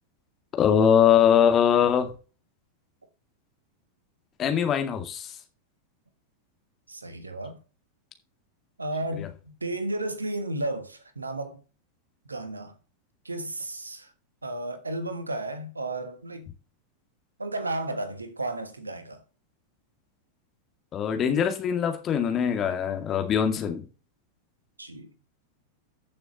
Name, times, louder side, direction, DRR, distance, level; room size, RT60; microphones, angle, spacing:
voice 1, 0.5-2.1 4.4-5.3 9.2-9.3 20.9-23.8, left 8 dB, 30° left, 2.0 m, -22 dB
voice 2, 6.9-7.6 8.8-11.6 12.3-12.7 13.2-14.1 14.4-16.5 17.4-19.2 24.8-25.1, right 2 dB, 80° right, 1.5 m, -33 dB
15.0 x 6.8 x 3.0 m
figure-of-eight pair, 90°, 0 cm